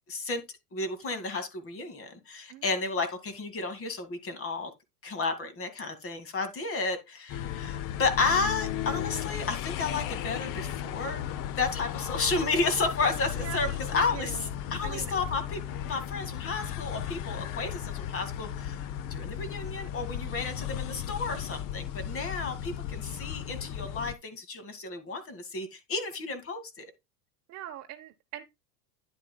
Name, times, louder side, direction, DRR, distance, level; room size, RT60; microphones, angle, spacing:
voice 1, 0.1-0.4 0.7-4.7 5.0-11.2 11.6-15.6 15.8-26.9, left 3 dB, 30° left, 2.2 m, -32 dB
sound 1, 7.3-24.2, left 11 dB, 45° left, 0.8 m, -35 dB
voice 2, 13.4-14.5 14.8-15.1 27.5-28.4, right 12 dB, 35° right, 1.0 m, -42 dB
10.0 x 8.6 x 2.3 m
supercardioid pair, 115°, 45 cm